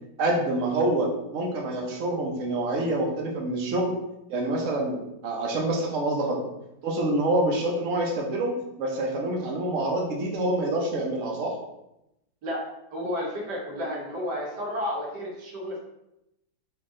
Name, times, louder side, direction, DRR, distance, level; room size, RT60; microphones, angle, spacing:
voice 1, 0.2-3.9 4.3-6.4 6.8-11.6, right 1 dB, 55° right, 0 dB, 1.1 m, -26 dB
voice 2, 12.9-15.8, left 1 dB, 80° right, -2 dB, 1.7 m, -31 dB
4.5 x 3.0 x 3.7 m, 0.88 s
omnidirectional pair, 1.8 m